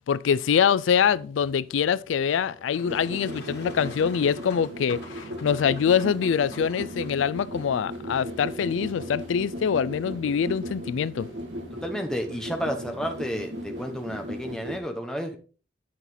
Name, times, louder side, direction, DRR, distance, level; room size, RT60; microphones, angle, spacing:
voice 1, 0.1-11.3, left 7 dB, 85° left, 0.4 m, -24 dB
sound 1, 1.0-14.5, equal, 30° left, 4.1 m, -55 dB
Boat Water vehicle, 2.1-7.1, left 2 dB, 55° left, 3.0 m, -47 dB
sound 2, 2.8-14.8, equal, 70° right, 2.2 m, -37 dB
voice 2, 11.7-15.4, equal, 5° left, 1.1 m, -31 dB
9.8 x 5.7 x 3.9 m
head